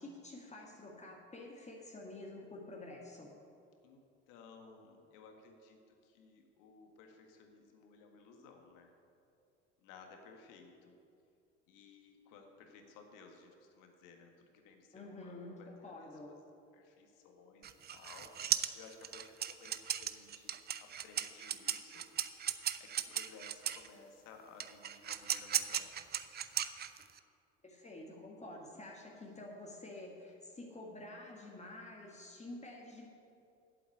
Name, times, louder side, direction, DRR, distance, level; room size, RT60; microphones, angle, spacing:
voice 1, 0.0-3.3 14.9-16.3 27.6-33.1, left 2 dB, 20° left, 0 dB, 1.8 m, -49 dB
voice 2, 3.8-8.9 9.8-11.0 11.7-16.4 16.7-22.1 22.5-26.0 28.4-28.8, left 4 dB, 60° left, 4 dB, 1.7 m, -58 dB
sound 1, 17.6-23.9 24.6-27.2, right 9 dB, 30° right, 0.5 m, -36 dB
8.3 x 7.8 x 8.5 m, 2.5 s
hypercardioid pair, 65°, 35 cm